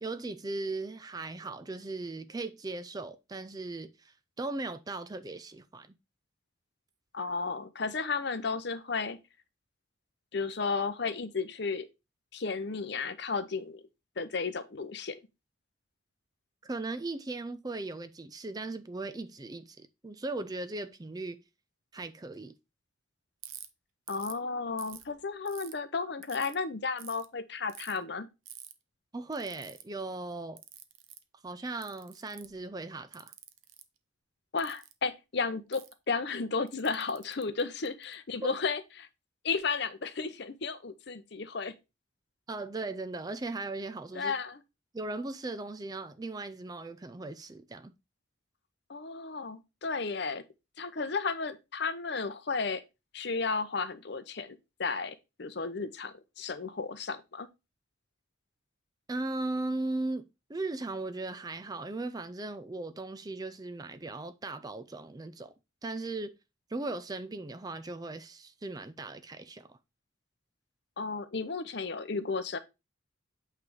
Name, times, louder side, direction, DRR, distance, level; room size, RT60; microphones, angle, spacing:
voice 1, 0.0-5.9 16.6-21.4 21.9-22.6 29.1-30.6 31.4-33.3 38.4-38.5 42.5-44.3 44.9-47.9 59.1-60.2 60.5-65.5 65.8-66.3 66.7-69.8, right 2 dB, 20° right, 0.4 m, -38 dB
voice 2, 7.1-9.2 10.3-11.9 12.3-13.8 14.2-15.2 24.1-28.3 34.5-39.1 39.4-41.7 44.1-44.6 48.9-50.4 50.8-52.8 53.1-57.5 71.0-72.6, left 4 dB, 55° left, 0.7 m, -33 dB
Ratchet pawl, 23.4-23.7 24.1-24.4 24.8-25.7 26.2-26.5 27.0-27.2 27.7-28.0 28.5-28.7 29.3-29.8 30.6-31.2 31.8-32.6 33.1-33.8 34.6-34.9 35.7-35.9 36.7-38.1, right 12 dB, 90° right, 0.7 m, -48 dB
8.4 x 3.3 x 4.8 m
head